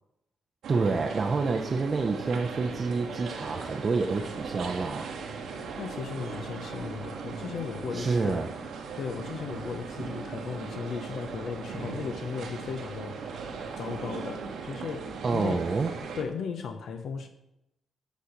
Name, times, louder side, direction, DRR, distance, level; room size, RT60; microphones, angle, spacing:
sound 1, 0.6-16.2, right 5 dB, 80° right, 1.2 m, -38 dB
voice 1, 0.7-5.1 7.9-8.5 15.2-15.9, right 4 dB, 40° right, 3 dB, 0.6 m, -28 dB
voice 2, 5.8-8.4 9.0-15.6 16.1-17.3, left 6 dB, 70° left, 6 dB, 0.7 m, -36 dB
8.3 x 4.2 x 6.5 m, 0.86 s
cardioid pair, 105°, 0 cm